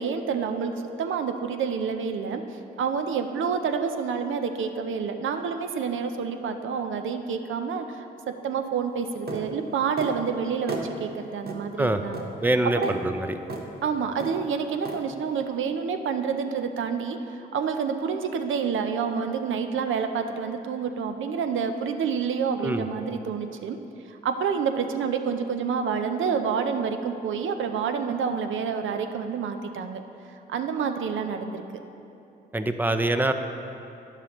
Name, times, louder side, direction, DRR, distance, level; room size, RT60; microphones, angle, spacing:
voice 1, 0.0-2.4 2.8-12.3 12.6-13.0 13.8-23.8 24.1-30.0 30.5-31.6, right 6 dB, 70° right, 7 dB, 0.6 m, -28 dB
sound 1, 9.3-9.5 10.0-10.2 10.7-10.9 11.5-11.6 12.1-12.3 12.8-13.0 13.5-13.7 14.2-14.4 14.8-15.0, right 3 dB, 50° right, 1.0 m, -34 dB
voice 2, 12.4-13.4 22.6-22.9 32.5-33.3, right 1 dB, 10° right, 8 dB, 0.5 m, -24 dB
9.8 x 6.6 x 3.0 m, 2.7 s
supercardioid pair, 55°, 21 cm